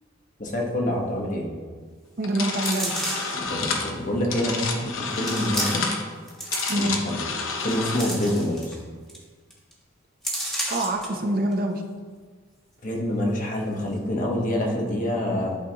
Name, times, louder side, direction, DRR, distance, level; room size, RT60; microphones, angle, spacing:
voice 1, 0.4-1.5 3.4-5.9 6.7-7.2 7.6-8.8 12.8-15.6, left 1 dB, 40° left, -1 dB, 1.1 m, -26 dB
sound 1, 2.2-8.0, left 4 dB, 85° left, 0.8 m, -30 dB
voice 2, 2.2-3.1 6.7-7.0 10.7-11.8, right 1 dB, 50° right, 2 dB, 0.7 m, -26 dB
sound 2, 2.6-3.4 4.2-4.3 5.2-6.0 6.3-7.1 7.6-8.8 9.1-9.2 9.5-9.7 10.2-11.1 11.5-11.6, equal, ahead, 1.2 m, -31 dB
11.5 x 4.0 x 2.9 m, 1.5 s
head